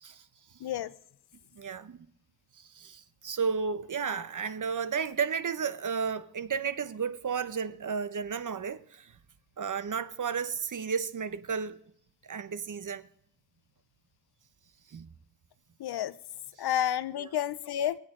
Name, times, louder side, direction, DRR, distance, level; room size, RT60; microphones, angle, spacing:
voice 1, 0.6-0.9 15.8-16.2 16.6-18.0, left 11 dB, 80° left, 0.8 m, -30 dB
voice 2, 1.5-2.0 2.6-9.1 9.6-11.8 12.2-13.1 14.9-15.1 16.6-16.7 17.2-17.3, right 6 dB, 55° right, 1.0 m, -33 dB
24.5 x 8.8 x 3.8 m
supercardioid pair, 45°, 38 cm